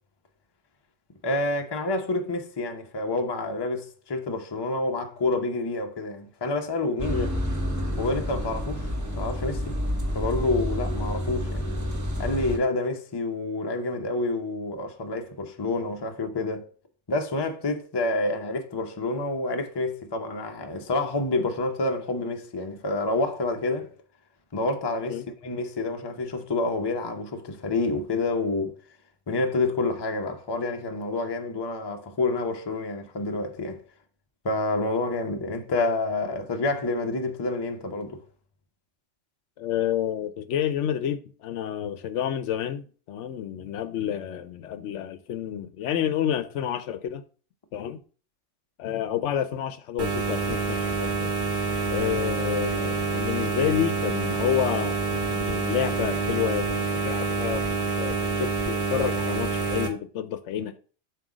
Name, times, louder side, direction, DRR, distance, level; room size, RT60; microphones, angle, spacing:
voice 1, 1.2-7.3 7.9-9.8 10.1-11.6 12.2-16.7 17.1-23.9 24.5-28.8 29.3-33.8 34.4-38.2, left 2 dB, 25° left, 0.6 m, -28 dB
sound 1, 7.0-12.6, equal, 15° right, 0.8 m, -29 dB
voice 2, 39.6-47.2 47.7-48.0 48.8-51.3 51.9-57.7 58.0-60.8, left 10 dB, 75° left, 0.9 m, -29 dB
sound 2, 50.0-59.9, right 4 dB, 45° right, 1.1 m, -27 dB
7.6 x 2.8 x 4.9 m
omnidirectional pair, 1.3 m